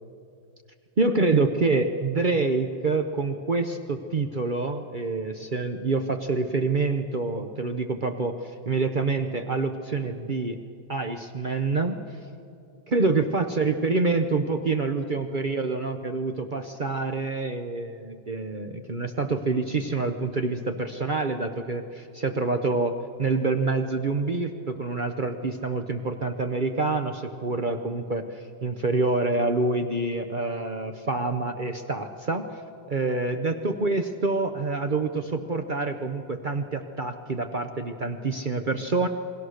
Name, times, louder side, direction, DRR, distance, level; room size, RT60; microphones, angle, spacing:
voice 1, 1.0-10.6 10.9-12.0 12.9-22.9 23.2-32.5 32.9-39.1, right 3 dB, 60° right, 6 dB, 0.5 m, -27 dB
28.5 x 20.5 x 6.5 m, 2.4 s
omnidirectional pair, 2.1 m